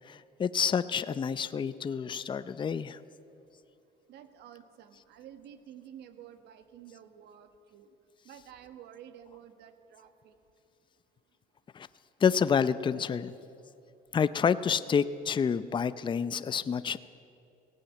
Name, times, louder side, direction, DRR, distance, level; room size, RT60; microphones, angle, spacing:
voice 1, 0.1-3.0 11.7-11.9 12.2-13.3 14.1-17.0, left 7 dB, 30° left, 14 dB, 0.6 m, -28 dB
voice 2, 4.1-7.9 8.2-10.3, right 9 dB, 80° right, 10 dB, 1.5 m, -51 dB
17.5 x 16.5 x 9.2 m, 2.7 s
cardioid pair, 110°, 17 cm